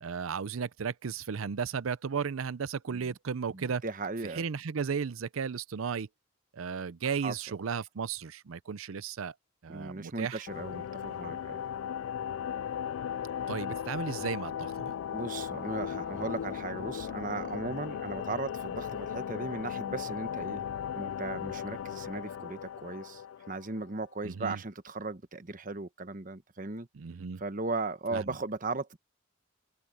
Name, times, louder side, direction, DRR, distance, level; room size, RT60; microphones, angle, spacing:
voice 1, 0.0-3.8 4.2-6.1 6.5-9.3 9.6-10.4 13.5-14.9 24.2-24.6 26.9-27.4 28.1-28.3, right 6 dB, 85° right, 0.5 m, -34 dB
voice 2, 3.5-4.4 7.2-7.3 9.7-11.7 15.1-20.7 20.9-26.9 27.4-29.0, right 3 dB, 40° right, 1.1 m, -37 dB
sound 1, 10.5-24.0, left 8 dB, 75° left, 0.3 m, -37 dB
open air
head